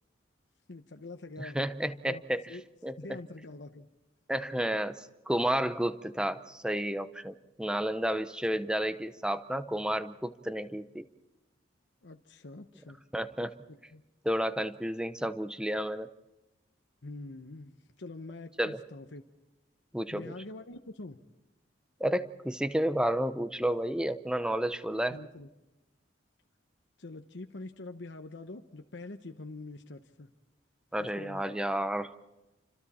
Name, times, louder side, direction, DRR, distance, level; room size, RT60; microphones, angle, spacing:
voice 1, 0.7-1.6 2.1-2.2 2.5-2.6 3.0-3.9 8.5-8.6 12.0-13.0 13.7-14.0 17.0-19.2 20.1-21.2 25.1-25.5 27.0-30.3 31.0-31.6, left 2 dB, 65° left, 6 dB, 0.9 m, -45 dB
voice 2, 1.4-2.4 2.8-2.9 4.3-11.0 13.1-13.5 14.2-16.1 18.6-18.8 19.9-20.3 22.0-25.2 30.9-32.2, right 1 dB, 5° right, 11 dB, 0.7 m, -31 dB
30.0 x 26.0 x 4.3 m, 1.0 s
head